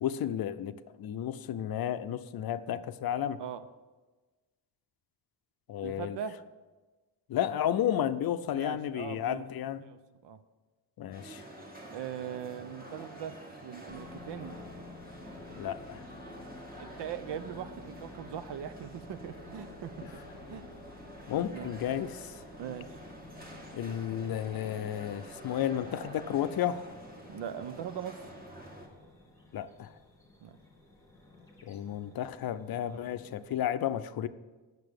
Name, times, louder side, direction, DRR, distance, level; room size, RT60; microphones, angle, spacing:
voice 1, 0.0-3.4 5.7-6.2 7.3-9.8 11.0-11.4 15.6-16.0 21.3-22.4 23.7-26.9 29.5-29.9 31.6-34.3, left 10 dB, 60° left, 12 dB, 0.5 m, -32 dB
voice 2, 5.8-6.4 8.5-9.4 9.8-10.4 11.9-13.4 13.6-14.5 16.8-19.9 20.5-20.6 21.3-21.7 22.6-22.9 27.3-28.2 30.4-30.5, right 8 dB, 80° right, 11 dB, 0.7 m, -40 dB
sound 1, 11.1-28.9, right 1 dB, 20° right, 1.5 m, -48 dB
sound 2, 13.9-33.6, left 3 dB, 10° left, 1.5 m, -52 dB
8.8 x 6.7 x 6.5 m, 1.3 s
wide cardioid pair, 160°, 42 cm